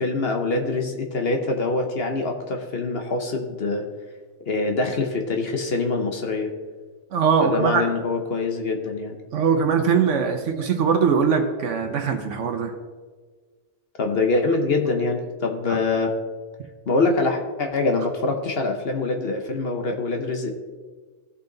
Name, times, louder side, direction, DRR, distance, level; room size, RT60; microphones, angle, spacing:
voice 1, 0.0-3.8 4.5-6.5 7.4-9.2 14.0-16.1 16.9-20.5, left 3 dB, 55° left, 3 dB, 1.1 m, -24 dB
voice 2, 7.1-7.8 9.3-12.7 15.7-15.8, right 6 dB, 75° right, 5 dB, 1.1 m, -21 dB
15.5 x 5.6 x 3.9 m, 1.4 s
omnidirectional pair, 1.3 m